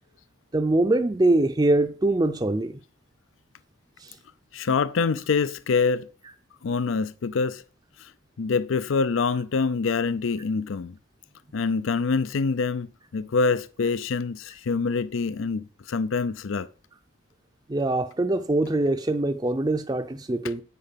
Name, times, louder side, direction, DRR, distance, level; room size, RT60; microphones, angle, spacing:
voice 1, 0.5-2.8 4.0-4.2 17.7-20.6, right 2 dB, 20° right, 0.5 m, -23 dB
voice 2, 4.5-6.1 6.6-7.6 8.0-8.1 8.4-11.0 11.5-12.9 13.1-16.7 20.4-20.5, left 4 dB, 75° left, 0.5 m, -25 dB
10.0 x 8.0 x 5.7 m
head